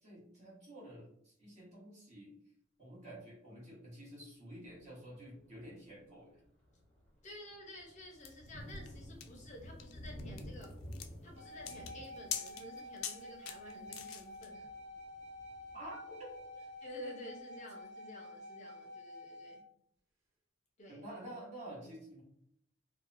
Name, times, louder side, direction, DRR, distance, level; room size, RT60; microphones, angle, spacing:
voice 1, 0.0-2.3 2.8-6.4 15.7-16.3 20.9-22.2, right 1 dB, 35° right, -6 dB, 1.1 m, -50 dB
Thunder, 4.7-5.0 5.5-5.7 6.1-16.7, equal, 10° left, 0.9 m, -52 dB
voice 2, 7.2-10.8 11.2-14.7 16.8-19.6 20.8-21.0, left 1 dB, 35° left, 0 dB, 0.6 m, -51 dB
sound 1, 8.2-14.5, left 8 dB, 85° left, 0.3 m, -45 dB
sound 2, 11.4-19.6, left 1 dB, 85° right, 0.8 m, -50 dB
2.8 x 2.1 x 2.5 m, 0.72 s
head